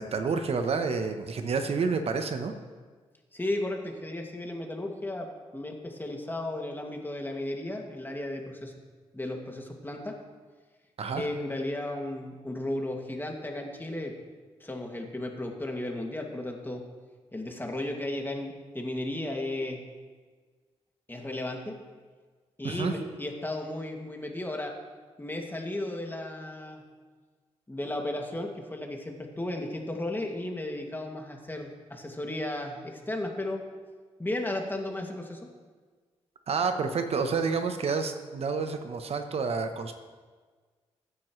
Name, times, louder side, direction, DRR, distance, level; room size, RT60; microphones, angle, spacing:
voice 1, 0.0-2.5 11.0-11.3 22.6-22.9 36.5-39.9, right 5 dB, 60° right, 7 dB, 1.0 m, -29 dB
voice 2, 3.3-5.3 5.5-8.7 9.1-10.1 11.2-14.1 14.6-16.8 17.3-19.8 21.1-21.7 22.6-24.7 25.2-26.8 27.7-33.6 34.2-35.5, left 1 dB, 20° left, 1 dB, 2.3 m, -34 dB
15.0 x 9.8 x 3.2 m, 1.5 s
supercardioid pair, 50°, 11 cm